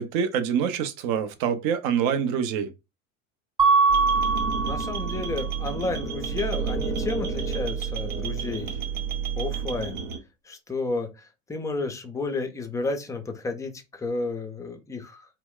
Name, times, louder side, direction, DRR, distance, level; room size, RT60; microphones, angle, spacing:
voice 1, 0.0-2.7, right 7 dB, 50° right, 0.6 m, -25 dB
Mallet percussion, 3.6-5.4, right 4 dB, 10° right, 0.8 m, -22 dB
sound 1, 3.9-10.2, right 6 dB, 75° right, 0.9 m, -30 dB
voice 2, 4.6-8.8 9.4-10.0 10.5-15.2, left 3 dB, 10° left, 0.4 m, -32 dB
2.2 x 2.1 x 3.6 m
hypercardioid pair, 80°, 43 cm